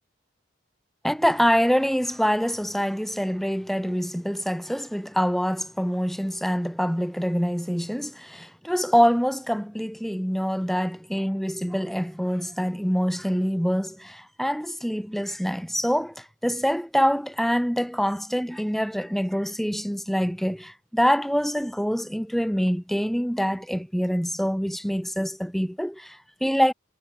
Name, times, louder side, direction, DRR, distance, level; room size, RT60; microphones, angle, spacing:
voice 1, 1.0-26.7, equal, ahead, 5.6 m, -25 dB
head